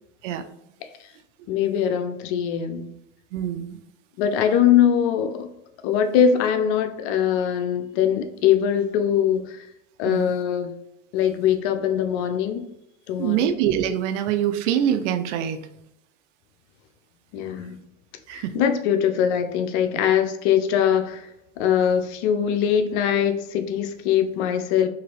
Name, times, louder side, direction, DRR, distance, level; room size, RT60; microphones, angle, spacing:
voice 1, 1.5-2.9 4.2-5.5 5.8-9.6 10.0-10.7 11.1-12.6 13.1-13.5 17.3-17.8 18.3-21.3 21.6-24.9, left 9 dB, 60° left, 7 dB, 0.5 m, -22 dB
voice 2, 3.3-3.8 10.1-10.3 13.2-15.7 18.3-18.6, right 10 dB, 65° right, 9 dB, 0.5 m, -24 dB
2.8 x 2.5 x 3.0 m, 0.82 s
hypercardioid pair, 105°, 39 cm